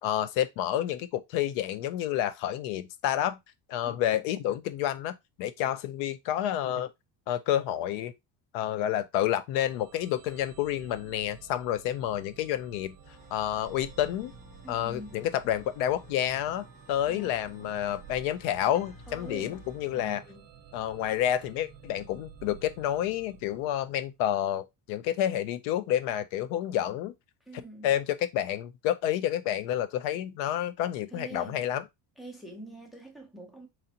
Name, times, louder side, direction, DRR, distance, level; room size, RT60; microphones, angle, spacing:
voice 1, 0.0-3.4 3.7-6.9 7.3-8.1 8.5-13.0 13.3-14.3 14.7-20.2 20.7-27.1 27.8-31.8, left 11 dB, 85° left, 0.7 m, -29 dB
sound 1, 9.5-24.2, right 8 dB, 35° right, 0.9 m, -52 dB
sound 2, 13.0-20.1, left 2 dB, 45° left, 1.9 m, -54 dB
voice 2, 14.6-15.4 17.1-18.0 19.1-19.6 19.9-20.5 27.5-27.9 31.1-31.6 32.2-33.7, right 1 dB, ahead, 0.5 m, -45 dB
3.9 x 3.1 x 2.7 m
cardioid pair, 165°, 44 cm